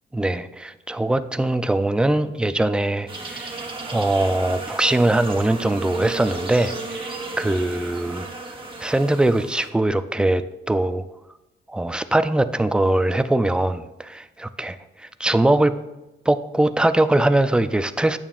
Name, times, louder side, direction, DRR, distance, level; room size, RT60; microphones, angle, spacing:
voice 1, 0.1-8.3 8.8-11.0 11.7-15.7 16.3-18.2, right 1 dB, 5° right, 11 dB, 0.3 m, -22 dB
sound 1, 3.1-9.7, right 3 dB, 25° right, 1.1 m, -34 dB
12.5 x 8.8 x 2.5 m, 0.99 s
wide cardioid pair, 150°, 19 cm